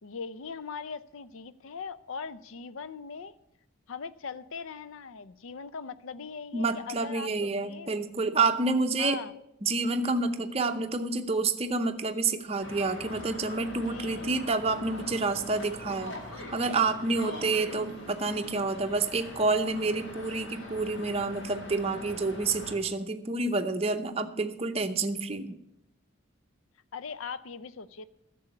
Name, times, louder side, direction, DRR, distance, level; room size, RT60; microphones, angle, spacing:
voice 1, 0.0-3.3 3.9-7.9 9.0-9.3 13.8-14.4 26.9-28.1, left 5 dB, 75° left, 15 dB, 0.5 m, -40 dB
voice 2, 6.5-9.2 9.6-16.1 16.5-25.6, right 3 dB, 30° right, 6 dB, 0.7 m, -28 dB
sound 1, 12.6-22.8, left 1 dB, 55° left, 2.2 m, -43 dB
10.5 x 7.0 x 8.2 m, 0.84 s
head